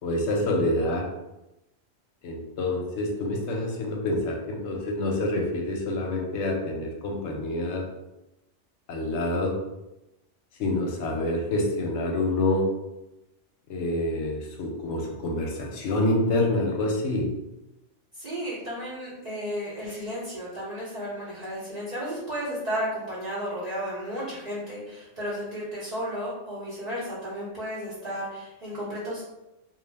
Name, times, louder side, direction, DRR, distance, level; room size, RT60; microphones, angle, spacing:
voice 1, 0.0-1.1 2.2-7.9 8.9-9.6 10.6-12.7 13.7-17.3, left 1 dB, 70° left, 0 dB, 0.8 m, -27 dB
voice 2, 18.2-29.2, equal, 40° right, -10 dB, 0.8 m, -33 dB
2.3 x 2.0 x 3.2 m, 0.96 s
omnidirectional pair, 1.3 m